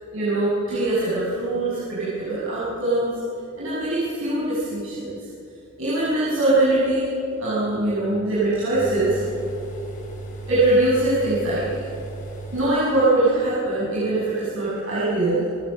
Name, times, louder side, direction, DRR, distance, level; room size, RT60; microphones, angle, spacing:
voice 1, 0.1-3.2 3.6-5.1 5.8-7.1 7.4-9.3 10.5-11.8 12.5-15.5, right 2 dB, 85° right, -9 dB, 6.6 m, -22 dB
sound 1, 8.7-13.2 13.4-13.5, right 2 dB, 40° left, 5.2 m, -36 dB
29.5 x 17.0 x 6.6 m, 2.9 s
head